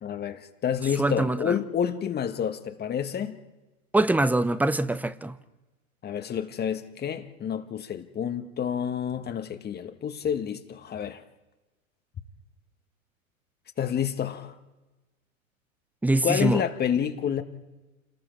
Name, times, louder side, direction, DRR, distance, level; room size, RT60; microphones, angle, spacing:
voice 1, 0.0-3.4 6.0-11.2 13.8-14.5 16.2-17.4, left 8 dB, 25° left, 1.5 m, -29 dB
voice 2, 1.0-1.5 3.9-5.3 16.0-16.6, right 2 dB, 5° right, 0.7 m, -24 dB
30.0 x 19.5 x 4.7 m
figure-of-eight pair, 95°, 42 cm